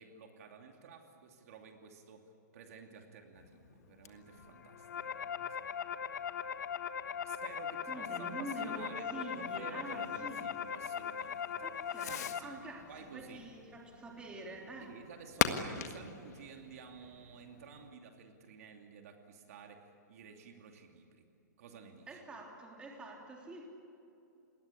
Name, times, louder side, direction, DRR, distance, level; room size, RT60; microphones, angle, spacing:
voice 1, 0.0-5.6 7.2-9.1 9.3-11.7 12.1-12.5 12.9-13.5 14.8-21.3 21.6-22.2, right 6 dB, 55° right, 3 dB, 2.8 m, -52 dB
Fireworks, 3.3-17.9, left 8 dB, 60° left, 1.8 m, -44 dB
sound 1, 4.6-12.4, left 8 dB, 80° left, 1.4 m, -39 dB
voice 2, 7.9-10.5 11.6-14.9 15.5-15.8 22.1-23.7, right 1 dB, 10° right, 0 dB, 3.3 m, -46 dB
28.0 x 21.0 x 8.5 m, 2.7 s
hypercardioid pair, 160°, 10 cm